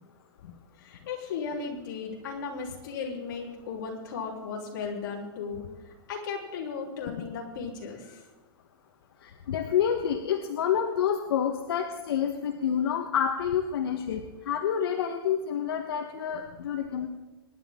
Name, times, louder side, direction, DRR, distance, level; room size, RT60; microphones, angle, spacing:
voice 1, 0.8-8.2, left 5 dB, 50° left, -1 dB, 3.6 m, -36 dB
voice 2, 9.2-17.1, left 8 dB, 70° left, 4 dB, 1.3 m, -28 dB
24.0 x 10.5 x 3.7 m, 1.1 s
supercardioid pair, 175°, 13 cm